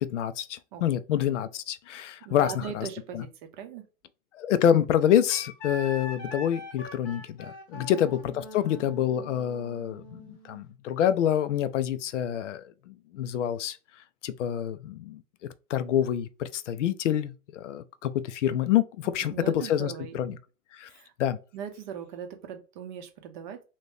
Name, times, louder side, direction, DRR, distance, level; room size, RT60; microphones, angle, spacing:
voice 1, 0.0-2.9 3.1-3.3 4.3-13.8 14.2-15.2 15.7-20.4 20.7-20.9 21.2-21.4, left 10 dB, 55° left, 0.5 m, -27 dB
voice 2, 2.2-3.8 7.7-8.0 19.0-20.2 20.9-21.1 21.5-23.6, right 8 dB, 35° right, 0.6 m, -40 dB
Wind instrument woodwind instrument, 5.3-10.7, left 2 dB, 30° left, 0.9 m, -43 dB
2.9 x 2.7 x 3.3 m
hypercardioid pair, 125°, 44 cm